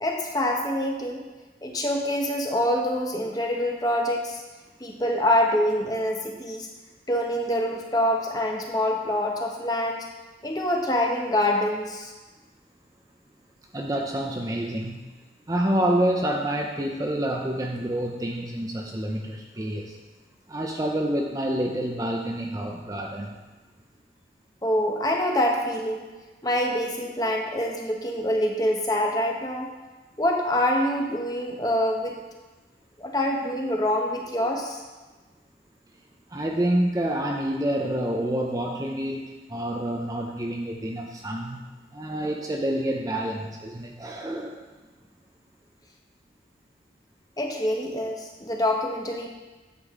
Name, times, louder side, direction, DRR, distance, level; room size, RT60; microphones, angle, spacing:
voice 1, 0.0-1.2 1.6-4.4 4.8-6.7 7.1-10.1 10.4-12.1 24.6-26.1 26.4-29.7 30.2-32.2 33.0-34.8 47.4-49.3, left 1 dB, 20° left, 1 dB, 1.0 m, -25 dB
voice 2, 13.7-15.0 15.5-20.0 20.5-23.4 36.3-41.6 41.9-44.6, right 1 dB, 20° right, 1 dB, 0.6 m, -28 dB
9.4 x 7.4 x 3.7 m, 1.2 s
head